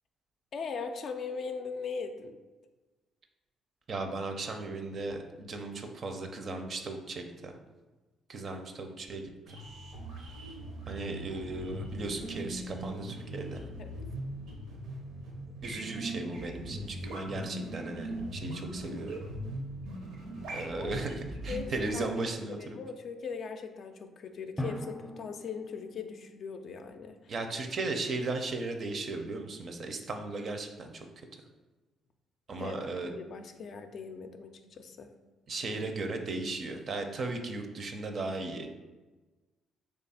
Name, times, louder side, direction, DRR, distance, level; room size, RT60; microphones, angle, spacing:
voice 1, 0.5-2.4 13.8-14.0 20.8-21.0 21.5-22.1 22.5-27.2 32.6-32.8 33.0-35.1, left 5 dB, 60° left, 6 dB, 0.3 m, -40 dB
voice 2, 3.9-7.5 8.3-9.2 10.9-13.6 15.6-19.2 20.5-22.8 27.3-31.1 32.5-33.1 35.5-38.7, right 3 dB, 50° right, 5 dB, 0.5 m, -36 dB
glitchy pad, 9.5-21.9, right 1 dB, 85° right, 0.7 m, -40 dB
Drum, 24.6-26.4, equal, 5° left, 0.5 m, -40 dB
3.2 x 2.4 x 4.1 m, 1.2 s
supercardioid pair, 70°, 0 cm